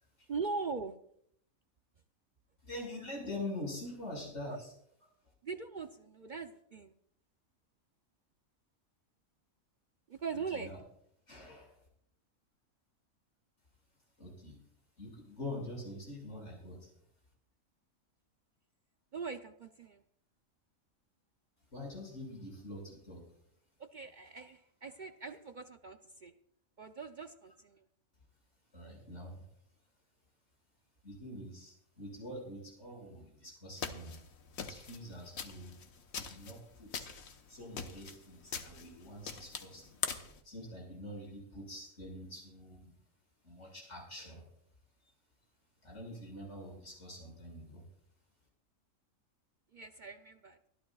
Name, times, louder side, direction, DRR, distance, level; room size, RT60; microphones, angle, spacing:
voice 1, 0.3-1.0 4.5-4.6 5.4-6.9 10.1-10.7 19.1-20.0 23.8-26.3 26.8-27.8 49.7-50.6, right 5 dB, 55° right, 7 dB, 0.5 m, -41 dB
voice 2, 2.6-4.7 10.5-10.8 11.3-11.8 14.2-14.6 15.0-16.9 21.7-23.2 28.7-29.4 31.0-34.2 34.6-35.7 36.1-37.1 37.5-39.8 40.4-42.9 43.4-44.5 45.0-45.1 45.8-47.8, left 1 dB, 55° left, -1 dB, 6.2 m, -45 dB
sound 1, 33.8-40.4, left 6 dB, 75° left, 1.5 m, -43 dB
24.0 x 12.5 x 2.3 m, 0.70 s
omnidirectional pair, 1.4 m